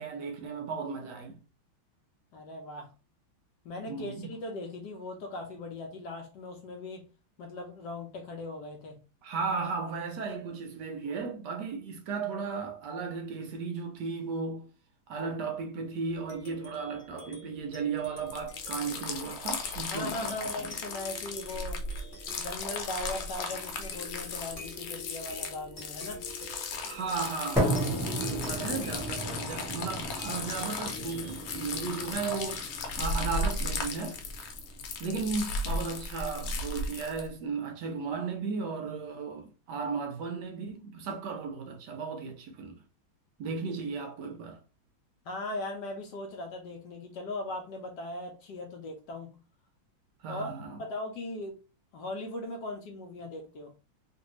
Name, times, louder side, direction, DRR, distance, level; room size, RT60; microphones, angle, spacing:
voice 1, 0.0-1.4 3.8-4.3 9.2-14.7 15.1-20.7 26.8-34.2 35.0-42.8 43.4-44.6 50.2-50.8, right 4 dB, 75° right, 1.0 m, -35 dB
voice 2, 2.3-2.9 3.6-7.1 7.4-9.0 19.9-21.8 22.4-26.2 45.3-49.3 50.3-50.5 50.8-51.5 51.9-53.7, left 2 dB, 70° left, 1.1 m, -39 dB
sound 1, 16.1-34.9, left 1 dB, 35° left, 0.8 m, -49 dB
sound 2, 18.3-37.3, left 3 dB, 85° left, 1.5 m, -36 dB
sound 3, 27.6-35.6, right 1 dB, 5° right, 0.3 m, -35 dB
3.2 x 2.5 x 3.0 m
omnidirectional pair, 2.2 m